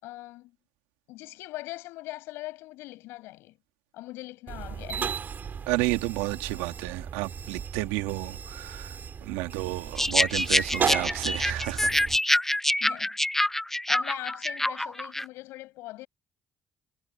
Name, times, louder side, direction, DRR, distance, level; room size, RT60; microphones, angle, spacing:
voice 1, 0.0-0.6 1.1-3.6 3.9-5.2 12.8-13.5 13.9-16.1, left 18 dB, 80° left, 6.1 m, -41 dB
sound 1, 4.5-12.2, right 7 dB, 50° right, 5.3 m, -35 dB
voice 2, 5.7-9.0 9.2-11.9, right 21 dB, 85° right, 2.5 m, -31 dB
sound 2, 10.0-15.2, left 1 dB, 5° left, 0.8 m, -26 dB
hypercardioid pair, 60°, 4 cm